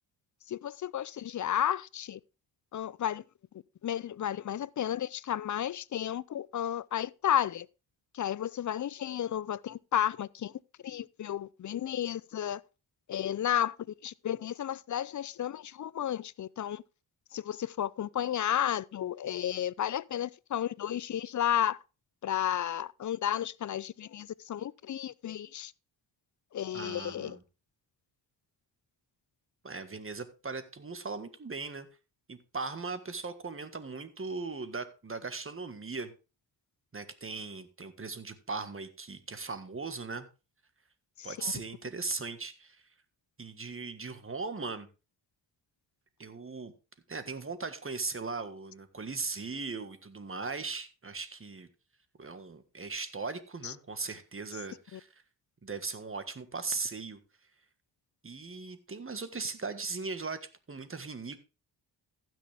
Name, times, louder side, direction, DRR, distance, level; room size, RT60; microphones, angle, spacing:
voice 1, 0.5-2.2 2.7-3.2 3.8-7.7 8.1-10.5 10.8-12.6 13.1-13.7 14.0-16.8 17.3-21.8 22.2-25.7 26.5-27.4 41.2-41.5 53.6-53.7 54.9-55.0, left 10 dB, 45° left, 0.5 m, -32 dB
voice 2, 26.7-27.4 29.6-31.9 32.3-36.1 36.9-40.3 41.2-42.8 43.4-44.9 46.2-46.7 47.1-51.7 52.2-55.1 55.6-57.2 58.2-60.4 60.7-61.4, right 4 dB, 30° right, 1.6 m, -38 dB
15.0 x 6.3 x 3.4 m
cardioid pair, 65°, 44 cm